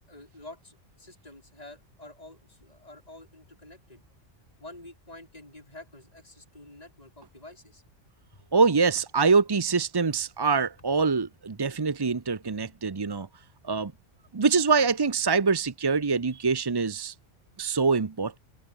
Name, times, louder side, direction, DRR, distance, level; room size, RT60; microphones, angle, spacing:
voice 1, 0.0-4.0 4.6-7.8 8.3-8.4, left 2 dB, 30° left, 5.3 m, -48 dB
voice 2, 8.5-13.3 13.6-13.9 14.3-17.1 17.6-18.4, right 4 dB, 30° right, 0.5 m, -24 dB
omnidirectional pair, 1.3 m